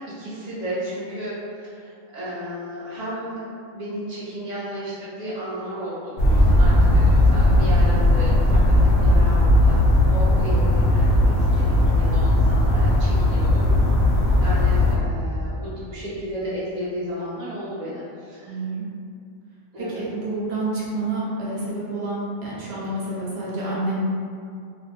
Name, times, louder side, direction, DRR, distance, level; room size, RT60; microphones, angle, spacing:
voice 1, 0.0-3.4 3.7-13.7 14.2-18.6 19.7-20.0, equal, 45° right, -11 dB, 0.6 m, -33 dB
sound 1, 6.2-15.0, left 1 dB, 55° left, 0.6 m, -17 dB
voice 2, 18.4-18.9 19.8-24.0, right 2 dB, 60° right, -7 dB, 0.9 m, -28 dB
2.4 x 2.1 x 3.1 m, 2.3 s
omnidirectional pair, 1.3 m